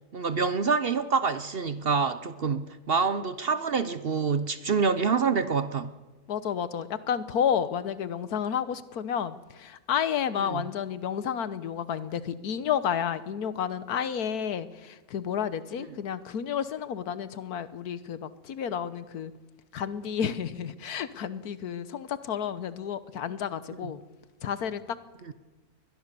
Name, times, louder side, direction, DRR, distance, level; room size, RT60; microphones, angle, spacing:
voice 1, 0.1-5.9 10.5-10.7 23.8-23.9 25.3-25.4, right 5 dB, 50° right, 12 dB, 0.8 m, -27 dB
voice 2, 6.3-19.3 19.7-24.0 24.4-25.0, left 8 dB, 80° left, 14 dB, 1.5 m, -31 dB
22.0 x 20.5 x 6.8 m, 1.2 s
omnidirectional pair, 1.6 m